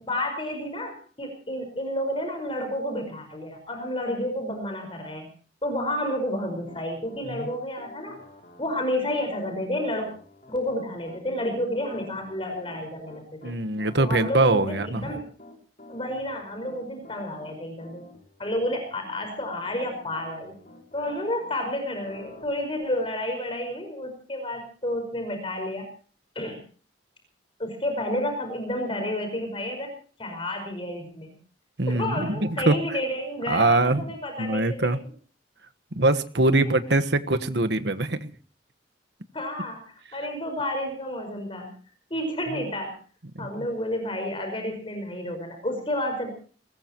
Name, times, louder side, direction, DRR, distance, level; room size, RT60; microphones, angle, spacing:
voice 1, 0.1-5.3 5.6-8.2 8.6-10.1 10.5-13.6 14.0-15.3 15.9-18.0 18.4-20.5 20.9-25.9 26.4-26.6 27.6-29.9 30.2-31.4 31.9-34.9 36.5-36.7 39.3-41.7 42.1-43.0 43.4-46.3, left 1 dB, 30° left, 5 dB, 5.2 m, -30 dB
Piano, 6.4-21.6 22.0-22.4, left 2 dB, 45° left, 6.8 m, -49 dB
voice 2, 13.4-15.1 31.8-32.8 33.5-34.1 34.4-35.0 35.9-38.3 43.3-43.5, right 2 dB, 65° right, 9 dB, 1.4 m, -23 dB
22.5 x 20.0 x 3.0 m, 0.41 s
head